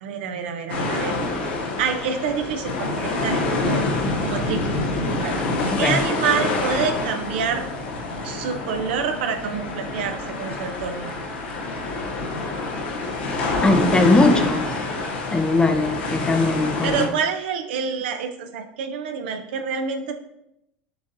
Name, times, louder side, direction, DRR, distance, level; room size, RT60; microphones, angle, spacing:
voice 1, 0.0-1.2 1.8-3.9 4.2-4.7 5.2-5.3 5.8-7.6 8.2-11.1 16.8-20.1, right 6 dB, 80° right, 6 dB, 0.6 m, -27 dB
sound 1, 0.7-17.1, left 2 dB, 85° left, 0.7 m, -26 dB
voice 2, 13.6-14.6 15.3-17.1, left 2 dB, 15° left, 7 dB, 0.5 m, -20 dB
7.0 x 2.6 x 2.6 m, 0.82 s
supercardioid pair, 110°, 6 cm